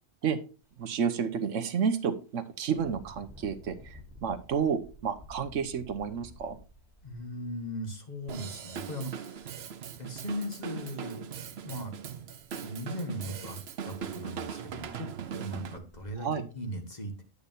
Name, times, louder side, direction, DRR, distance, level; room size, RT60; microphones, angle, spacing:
Engine, 0.6-0.8 1.3-1.5 2.7-8.5 9.4-9.5 9.9-10.6 12.4-12.5 12.9-13.0 13.5-13.6 13.9-14.4 15.0-15.1 15.7-16.1, left 1 dB, ahead, 2.0 m, -52 dB
voice 1, 0.8-6.6 16.2-16.4, right 7 dB, 80° right, 10 dB, 1.2 m, -31 dB
voice 2, 7.0-9.5 10.0-11.2 11.6-12.0 12.5-13.6 13.8-17.2, equal, 35° left, 4 dB, 1.6 m, -38 dB
Drum kit / Drum, 8.3-15.8, right 8 dB, 60° right, 0.9 m, -40 dB
9.3 x 8.3 x 2.7 m, 0.34 s
omnidirectional pair, 1.3 m